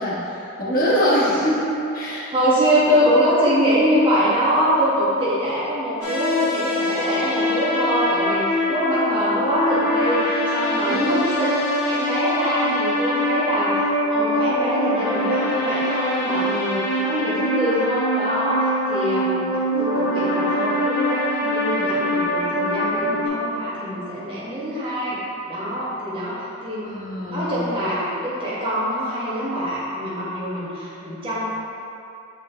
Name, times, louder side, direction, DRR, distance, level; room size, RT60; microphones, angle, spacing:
voice 1, 0.0-2.3 10.8-11.5 26.8-27.9, equal, 40° left, -7 dB, 1.3 m, -24 dB
voice 2, 2.3-11.5 11.8-13.8 14.1-19.5 19.8-25.2 25.5-26.9 27.3-31.4, equal, 25° right, -10 dB, 1.4 m, -23 dB
sound 1, 6.0-23.3, equal, 90° left, 1.2 m, -23 dB
8.7 x 4.0 x 3.0 m, 2.9 s
head